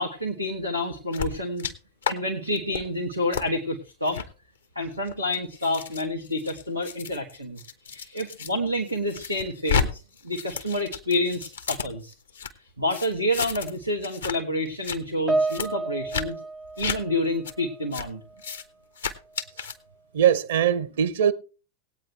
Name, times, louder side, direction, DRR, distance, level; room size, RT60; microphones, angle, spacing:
voice 1, 0.0-1.7 2.1-4.2 4.7-7.6 7.8-12.1 12.6-16.4 16.8-18.2, left 1 dB, 90° left, 1.3 m, -28 dB
sound 1, 1.1-1.7 2.0-2.1 2.5-2.8 3.3-3.5 4.0-4.3 4.9-8.5 8.9-9.9 10.1-12.5 12.9-13.8 14.0-14.3 14.7-15.0 15.5-15.7 16.1-16.3 16.8-17.0 17.4-17.5 17.9-18.1 18.4-18.6 19.0-19.7, left 6 dB, 70° left, 1.0 m, -31 dB
Piano, 15.3-17.9 18.2-18.5 19.3-19.4, right 2 dB, 10° right, 0.5 m, -30 dB
voice 2, 20.1-21.3, right 9 dB, 60° right, 0.6 m, -21 dB
19.0 x 8.8 x 3.2 m
figure-of-eight pair, 90°, 0 cm